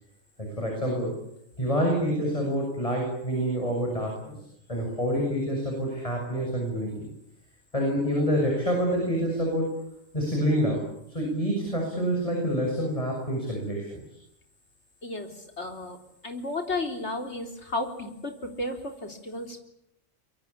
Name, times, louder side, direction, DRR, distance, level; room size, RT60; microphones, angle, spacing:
voice 1, 0.4-1.1 1.6-4.4 4.7-7.0 7.7-9.7 10.1-14.0, equal, 25° left, 0 dB, 7.5 m, -27 dB
voice 2, 15.0-16.0 16.2-19.6, left 2 dB, 55° left, 5 dB, 3.9 m, -33 dB
24.5 x 23.5 x 8.6 m, 0.78 s
omnidirectional pair, 1.4 m